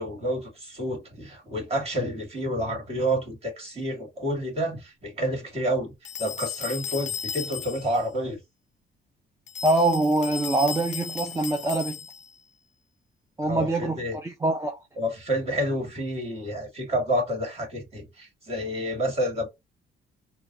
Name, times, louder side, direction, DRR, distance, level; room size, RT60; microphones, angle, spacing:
voice 1, 0.0-5.9 6.2-8.4 13.5-14.2 15.0-19.5, equal, 30° right, 2.2 m, -29 dB
sound 1, 6.0-8.0 9.5-12.3, left 7 dB, 40° left, 0.5 m, -35 dB
voice 2, 9.6-12.0 13.4-14.8, right 2 dB, 15° right, 0.5 m, -24 dB
3.8 x 2.4 x 2.7 m
cardioid pair, 90°, 20 cm